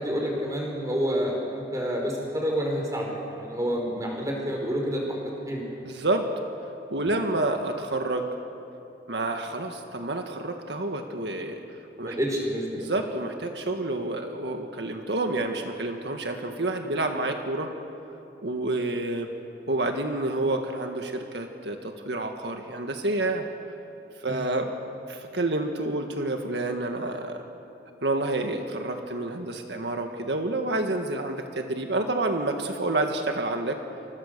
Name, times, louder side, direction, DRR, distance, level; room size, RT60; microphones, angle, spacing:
voice 1, 0.0-5.7 7.1-7.2 12.0-12.9 24.2-24.4, equal, 20° right, 0 dB, 5.2 m, -29 dB
voice 2, 5.8-6.3 6.9-8.3 9.1-11.6 12.0-12.2 12.7-17.7 18.4-19.3 19.7-23.4 24.2-24.7 25.1-27.4 28.0-33.8, right 2 dB, 80° right, 4 dB, 1.8 m, -29 dB
29.0 x 25.5 x 6.9 m, 2.9 s
head